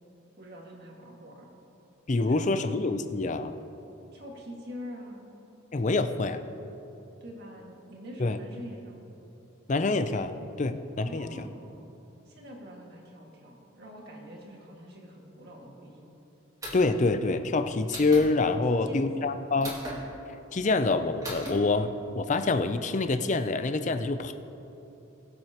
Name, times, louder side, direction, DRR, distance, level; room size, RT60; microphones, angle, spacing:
voice 1, 0.4-1.5 2.2-2.6 4.1-5.3 7.2-9.0 11.0-11.9 12.3-16.1 18.7-19.3, equal, 50° right, -2 dB, 1.9 m, -45 dB
voice 2, 2.1-3.6 5.7-6.4 8.2-8.4 9.7-10.3 10.6-11.3 16.7-19.8 20.5-24.3, left 3 dB, 35° left, 9 dB, 0.5 m, -26 dB
sound 1, 16.6-17.0 17.9-18.3 19.6-20.0 21.2-21.5, equal, 15° right, 2.2 m, -37 dB
22.0 x 7.6 x 2.9 m, 3.0 s
head